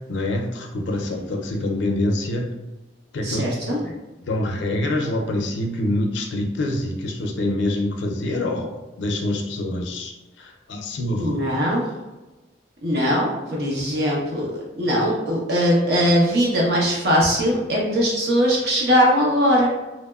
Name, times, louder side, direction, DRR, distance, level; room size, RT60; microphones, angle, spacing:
voice 1, 0.1-2.5 3.1-11.4, left 1 dB, 75° left, 2 dB, 0.4 m, -26 dB
voice 2, 3.2-3.8 11.2-11.9 12.8-19.7, equal, 60° right, -4 dB, 0.7 m, -20 dB
2.8 x 2.0 x 2.2 m, 1.1 s
head